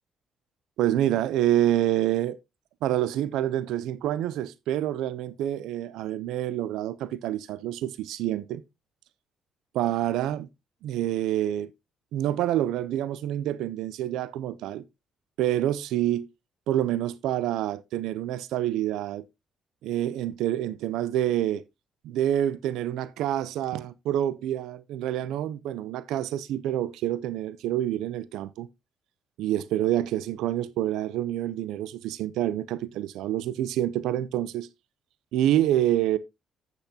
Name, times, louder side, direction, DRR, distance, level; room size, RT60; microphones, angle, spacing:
voice 1, 0.8-2.4 2.8-8.6 9.7-10.5 10.8-11.7 12.1-14.8 15.4-16.3 16.7-19.2 19.8-21.6 22.0-28.7 29.4-34.7 35.3-36.2, right 12 dB, 90° right, 0.5 m, -27 dB
10.5 x 8.2 x 2.7 m
cardioid pair, 90°, 0 cm